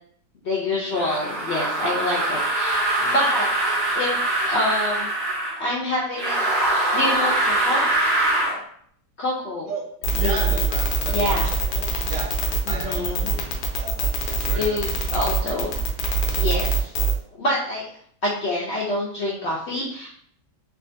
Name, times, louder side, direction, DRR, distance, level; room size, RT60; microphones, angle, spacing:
voice 1, 0.4-3.5 3.9-5.1 5.6-6.4 6.7-8.0 9.2-9.7 10.2-10.5 11.1-11.5 12.7-13.3 14.5-15.7 16.3-16.9 17.4-17.9 18.2-20.1, left 1 dB, 70° left, -5 dB, 0.6 m, -26 dB
sound 1, 0.9-5.6 6.1-8.6, right 2 dB, 55° right, 1.4 m, -23 dB
voice 2, 9.7-12.3 12.7-13.9 14.3-15.2, right 3 dB, 85° right, -1 dB, 1.4 m, -35 dB
sound 2, 10.0-17.2, right 2 dB, 90° left, 1.3 m, -23 dB
3.5 x 2.4 x 2.5 m, 0.63 s
omnidirectional pair, 1.8 m